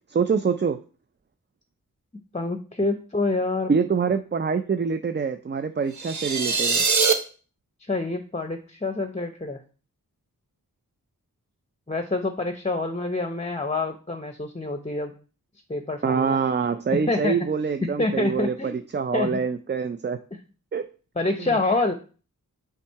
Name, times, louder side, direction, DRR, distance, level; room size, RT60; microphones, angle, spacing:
voice 1, 0.1-0.8 3.7-6.8 16.0-20.2 20.7-20.8 21.4-21.5, right 5 dB, 30° right, 9 dB, 0.4 m, -25 dB
voice 2, 2.3-3.7 7.9-9.6 11.9-15.1 15.7-16.4 17.1-17.4 18.0-18.8 19.1-19.4 21.2-21.9, left 2 dB, 20° left, 6 dB, 0.7 m, -27 dB
sound 1, 5.9-7.1, right 5 dB, 50° right, 0.9 m, -22 dB
5.8 x 3.5 x 4.6 m, 0.37 s
cardioid pair, 45°, 36 cm